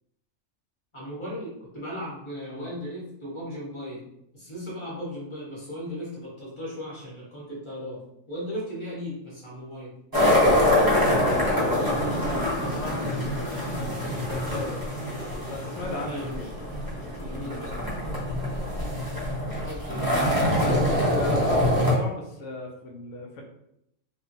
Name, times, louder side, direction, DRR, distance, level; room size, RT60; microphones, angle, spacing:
voice 1, 0.9-8.0 8.3-9.9 15.8-16.3 17.2-17.9 19.6-20.9, equal, 25° left, -7 dB, 0.9 m, -37 dB
sound 1, 10.1-21.9, left 1 dB, 25° right, 0.5 m, -25 dB
voice 2, 10.9-14.9 15.5-16.5 17.2-17.5 20.4-23.4, left 2 dB, 75° left, 0 dB, 1.0 m, -36 dB
3.0 x 2.3 x 2.6 m, 0.80 s
omnidirectional pair, 1.5 m